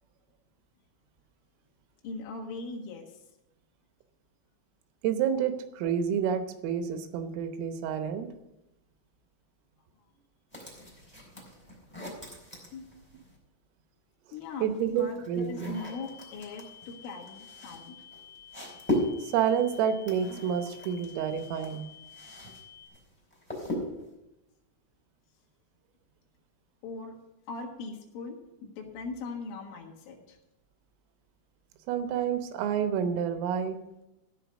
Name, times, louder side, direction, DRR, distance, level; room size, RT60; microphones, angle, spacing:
voice 1, 2.0-3.2 12.7-12.9 14.3-18.0 26.8-27.2 27.5-30.4, left 4 dB, 75° left, 0 dB, 4.0 m, -40 dB
voice 2, 5.0-8.3 14.6-15.8 19.2-21.9 31.9-33.8, right 8 dB, 85° right, 8 dB, 3.6 m, -29 dB
sound 1, 10.5-13.4 14.4-22.6 22.9-24.2, left 1 dB, 5° left, 2.5 m, -38 dB
sound 2, 15.7-22.9, left 9 dB, 40° left, 1.8 m, -51 dB
15.0 x 5.6 x 6.3 m, 0.94 s
omnidirectional pair, 5.9 m